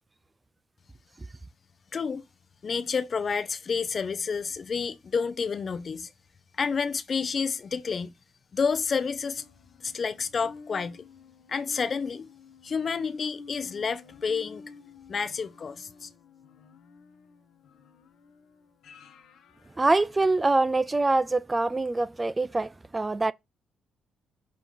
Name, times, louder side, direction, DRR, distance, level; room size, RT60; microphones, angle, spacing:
voice 1, 1.9-2.3 2.6-6.1 6.6-8.1 8.5-9.4 9.8-11.0 11.5-12.3 12.6-14.6 15.1-16.1, left 5 dB, 45° left, 0.6 m, -29 dB
sound 1, 9.4-20.8 21.3-21.4, left 5 dB, 75° left, 0.9 m, -50 dB
voice 2, 19.8-23.3, right 2 dB, 20° right, 0.3 m, -24 dB
6.3 x 2.9 x 5.2 m
cardioid pair, 90°, 0 cm